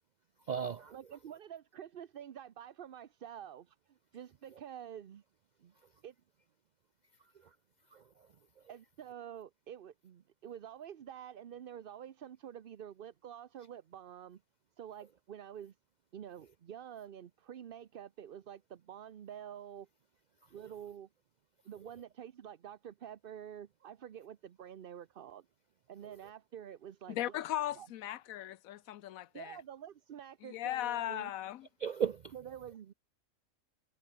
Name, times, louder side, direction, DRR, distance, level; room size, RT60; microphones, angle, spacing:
voice 1, 0.4-1.2 4.5-4.6 5.8-5.9 7.2-7.6 7.9-8.7 20.4-20.7 21.8-21.9 26.0-26.2 31.8-32.3, right 7 dB, 85° right, 0.4 m, -39 dB
voice 2, 0.9-5.2 5.6-5.7 6.0-6.1 8.7-14.4 14.8-15.7 16.1-19.9 20.5-21.1 21.6-25.4 25.9-27.4 27.7-27.9 29.3-31.3 32.3-32.9, right 9 dB, 50° right, 0.8 m, -48 dB
voice 3, 27.1-29.6 30.4-31.7, left 13 dB, 85° left, 1.1 m, -38 dB
omnidirectional pair, 1.4 m